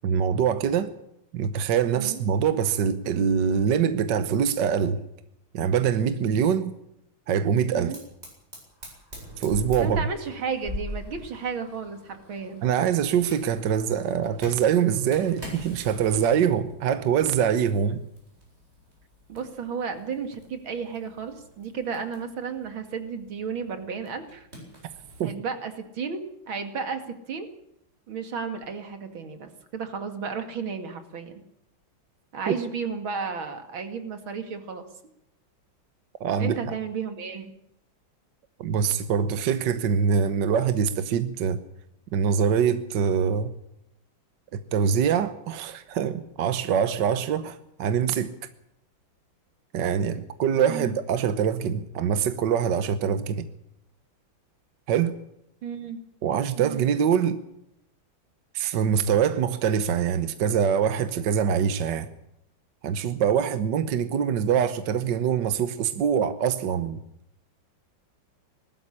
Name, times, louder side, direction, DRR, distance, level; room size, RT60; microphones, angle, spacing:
voice 1, 0.0-0.9 1.3-5.0 5.5-6.7 7.3-7.9 9.4-10.0 12.6-18.0 25.2-25.3 32.5-32.6 36.2-36.6 38.6-41.6 42.1-43.5 44.5-48.3 49.7-53.4 54.9-55.1 56.2-57.4 58.5-62.1 62.8-67.0, right 7 dB, 65° right, 11 dB, 1.6 m, -24 dB
Fire, 7.9-25.3, equal, 30° right, 8.2 m, -44 dB
voice 2, 9.8-12.6 19.3-24.5 25.2-27.5 28.1-31.3 32.3-34.9 36.4-37.5 50.7-50.9 55.6-56.0 56.6-56.8, right 5 dB, 90° right, 7 dB, 3.0 m, -33 dB
20.0 x 13.0 x 10.0 m, 0.77 s
omnidirectional pair, 2.1 m